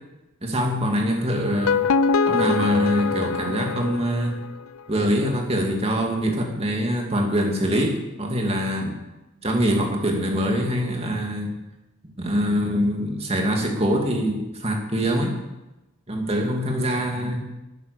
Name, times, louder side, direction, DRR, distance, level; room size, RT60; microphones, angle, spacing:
voice 1, 0.4-1.8 2.2-4.4 4.9-9.0 9.4-11.5 12.2-15.4 16.1-17.6, equal, 30° right, 1 dB, 2.4 m, -24 dB
sound 1, 1.4-4.6, left 5 dB, 80° left, 0.5 m, -24 dB
12.0 x 10.0 x 6.9 m, 1.0 s
head